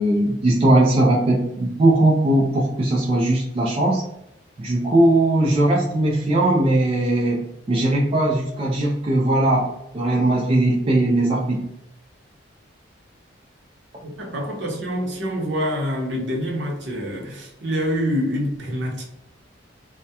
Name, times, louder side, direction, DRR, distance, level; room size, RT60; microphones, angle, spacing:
voice 1, 0.0-4.0 4.6-11.7, right 1 dB, 30° right, -3 dB, 0.3 m, -19 dB
voice 2, 14.0-19.0, equal, 65° right, -1 dB, 0.7 m, -26 dB
2.2 x 2.1 x 2.7 m, 0.85 s
head